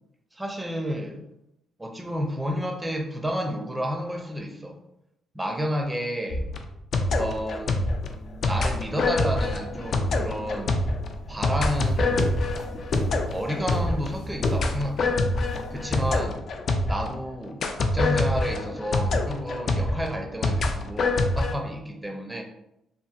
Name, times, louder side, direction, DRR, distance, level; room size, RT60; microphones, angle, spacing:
voice 1, 0.3-1.2 1.8-4.8 5.3-6.5 7.0-7.8 8.4-10.8 11.3-12.4 13.3-15.2 15.7-16.4 16.9-22.4, equal, 10° right, 3 dB, 0.4 m, -31 dB
sound 1, 6.3-17.2 17.6-21.5, left 2 dB, 55° left, 0.3 m, -26 dB
sound 2, 7.0-16.2, equal, 70° left, 0.8 m, -38 dB
2.7 x 2.5 x 2.3 m, 0.83 s
cardioid pair, 90°, 0 cm